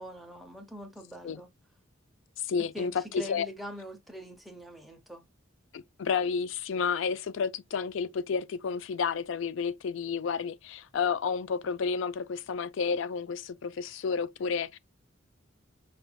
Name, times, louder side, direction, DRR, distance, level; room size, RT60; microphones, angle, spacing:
voice 1, 0.0-1.5 2.7-5.2, equal, ahead, 0.7 m, -43 dB
voice 2, 2.4-3.5 5.7-14.8, left 6 dB, 70° left, 0.4 m, -31 dB
5.0 x 3.3 x 2.2 m
head